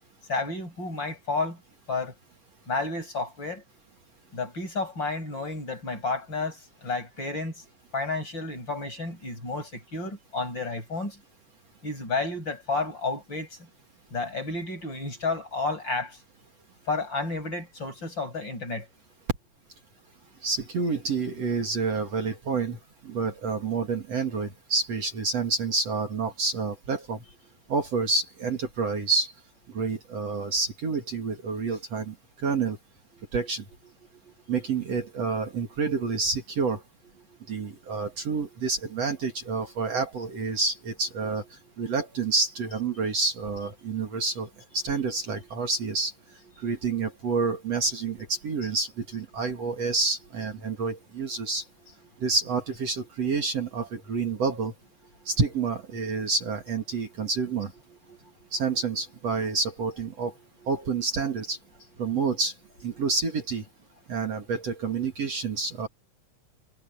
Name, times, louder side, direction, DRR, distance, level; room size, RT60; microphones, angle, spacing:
voice 1, 0.3-1.6 1.9-2.1 2.7-3.6 4.3-7.6 7.9-11.2 11.8-13.6 14.1-16.2 16.9-18.9 33.1-33.5 34.1-34.3 34.7-34.8 35.3-35.5 37.3-37.8 41.8-41.9 43.8-44.2 45.4-45.5 46.6-46.9 50.7-50.9 51.4-51.5 52.1-52.2 55.2-55.3 57.9-58.5 60.6-60.7, left 3 dB, 30° left, 8.4 m, -32 dB
voice 2, 20.4-27.2 27.7-29.3 29.7-32.8 33.3-33.6 34.5-36.8 37.5-41.4 41.8-46.1 46.6-51.6 52.2-54.7 55.3-57.7 58.5-60.3 60.7-61.6 62.0-62.5 62.8-63.6 64.1-65.9, right 4 dB, 50° right, 3.4 m, -28 dB
omnidirectional pair, 3.8 m